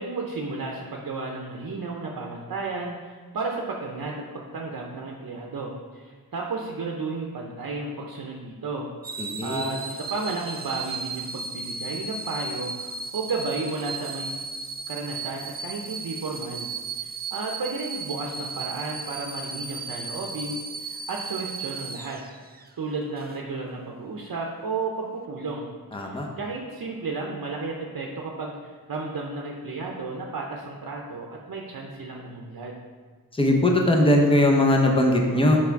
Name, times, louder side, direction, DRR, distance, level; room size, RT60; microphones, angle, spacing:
voice 1, 0.0-14.3 14.9-22.2 22.8-25.7 26.0-32.8, right 3 dB, 60° right, 0 dB, 0.7 m, -33 dB
sound 1, 9.0-22.7 23.2-23.4, right 4 dB, 25° right, 0.4 m, -35 dB
voice 2, 9.2-9.6 25.9-26.3 33.3-35.6, left 1 dB, 15° left, 1 dB, 0.8 m, -20 dB
5.9 x 4.8 x 4.5 m, 1.5 s
wide cardioid pair, 95°, 37 cm